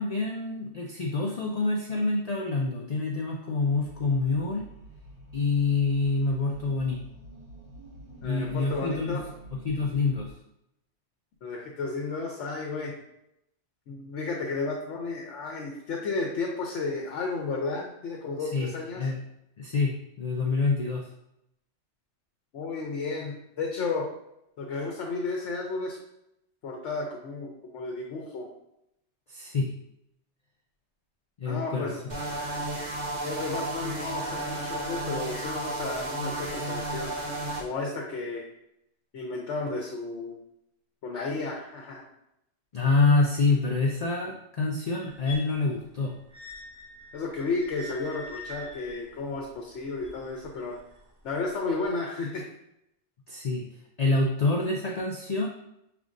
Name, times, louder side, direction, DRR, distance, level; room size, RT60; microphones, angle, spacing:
voice 1, 0.0-4.6 5.3-7.0 8.2-9.2 9.6-10.3 18.4-18.7 19.0-19.2 19.6-21.1 29.3-29.7 31.4-31.9 42.7-46.1 53.3-53.7 54.0-55.5, left 3 dB, 50° left, -1 dB, 0.5 m, -26 dB
sound 1, 3.7-10.3, right 1 dB, 65° right, 1.8 m, -48 dB
voice 2, 8.2-9.2 11.4-12.9 13.9-19.1 22.5-24.1 24.6-26.0 26.6-28.5 31.4-32.2 33.2-37.2 37.6-38.4 39.1-40.4 41.0-42.0 47.1-50.8 51.2-52.5, left 3 dB, 75° left, 0 dB, 1.0 m, -33 dB
sound 2, 32.1-37.6, right 1 dB, 40° right, 0.9 m, -33 dB
sound 3, 45.0-51.1 51.8-51.9, left 1 dB, 25° right, 1.3 m, -45 dB
6.2 x 3.4 x 2.5 m, 0.81 s
omnidirectional pair, 1.2 m